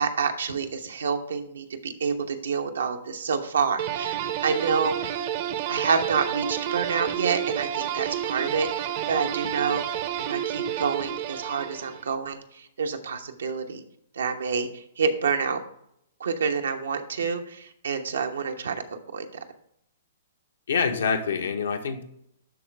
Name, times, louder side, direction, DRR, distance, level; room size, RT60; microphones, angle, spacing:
voice 1, 0.0-5.1 5.7-10.0 10.3-13.8 14.2-15.6 16.2-19.2, right 5 dB, 85° right, 5 dB, 1.0 m, -28 dB
sound 1, 3.8-12.1, right 10 dB, 45° right, 0.7 m, -30 dB
voice 2, 20.7-22.0, left 5 dB, 80° left, 5 dB, 1.3 m, -26 dB
12.0 x 4.0 x 3.4 m, 0.73 s
hypercardioid pair, 140°, 0 cm